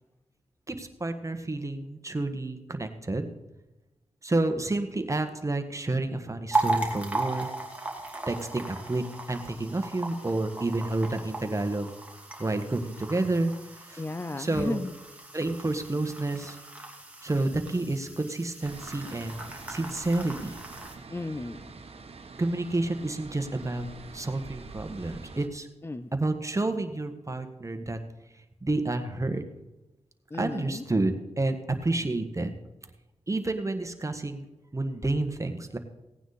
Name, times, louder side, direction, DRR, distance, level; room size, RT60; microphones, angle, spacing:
voice 1, 0.7-3.3 4.2-7.5 8.3-11.9 12.4-14.0 14.4-14.8 15.3-16.6 17.2-20.6 22.4-23.9 24.1-25.7 26.1-28.0 28.6-29.4 30.4-32.5 33.3-34.4 34.7-35.8, right 2 dB, 25° right, 7 dB, 1.4 m, -30 dB
sound 1, 6.5-20.9, right 2 dB, 10° right, 2.6 m, -36 dB
voice 2, 14.0-15.0 21.1-21.8 25.8-26.1 30.3-30.8, left 2 dB, 20° left, 11 dB, 0.5 m, -34 dB
sound 2, 18.6-25.5, right 4 dB, 60° right, 1.2 m, -46 dB
17.0 x 9.2 x 4.2 m, 1.0 s
cardioid pair, 60°, 11 cm